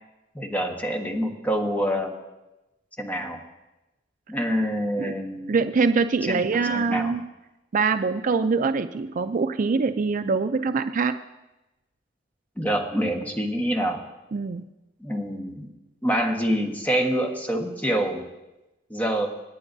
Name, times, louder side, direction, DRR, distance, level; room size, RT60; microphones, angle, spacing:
voice 1, 0.3-2.2 3.0-3.4 4.3-5.5 6.3-6.4 6.7-7.1 12.6-14.0 15.0-15.7 16.0-18.2 18.9-19.3, equal, 10° left, 2 dB, 1.3 m, -26 dB
voice 2, 5.5-7.2 7.7-11.1 14.3-14.6, right 4 dB, 45° right, 9 dB, 0.4 m, -24 dB
27.5 x 9.7 x 2.7 m, 1.0 s
head